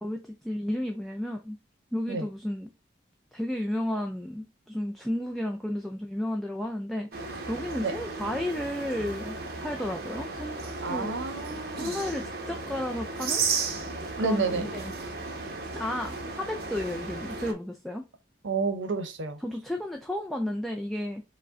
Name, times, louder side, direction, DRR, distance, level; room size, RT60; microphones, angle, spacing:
voice 1, 0.0-1.6 1.9-2.7 3.3-11.1 11.8-13.4 14.2-14.9 15.7-18.0 19.4-21.2, left 1 dB, ahead, 0.3 m, -33 dB
sound 1, 7.1-17.5, right 4 dB, 55° right, 0.8 m, -34 dB
voice 2, 10.8-11.9 14.2-14.7 18.4-19.4, right 4 dB, 85° right, 0.7 m, -30 dB
4.9 x 2.1 x 3.6 m
head